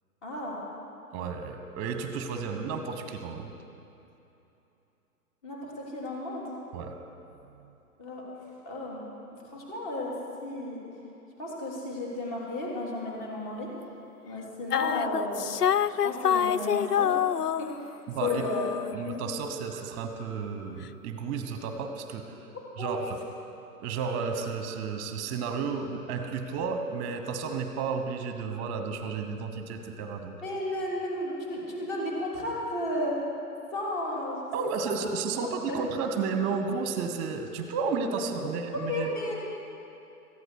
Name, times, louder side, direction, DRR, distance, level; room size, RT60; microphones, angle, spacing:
voice 1, 0.2-0.6 5.4-6.4 8.0-8.2 8.7-9.1 9.4-10.1 10.4-10.8 11.4-13.7 14.2-15.5 15.8-17.2 17.6-17.9 18.3-18.7 22.8-23.0 30.4-33.2 33.7-34.5 34.9-35.1 35.4-35.8 38.4-38.5 38.9-39.4, left 1 dB, 25° left, -4 dB, 3.7 m, -33 dB
voice 2, 1.1-3.5 6.7-6.9 18.1-18.4 18.9-22.3 22.8-23.2 23.8-30.3 34.5-39.1, right 5 dB, 20° right, 7 dB, 1.2 m, -32 dB
sound 1, 14.7-17.9 18.2-19.3, left 9 dB, 80° left, 0.5 m, -27 dB
17.5 x 15.0 x 4.8 m, 2.9 s
figure-of-eight pair, 120°, 47 cm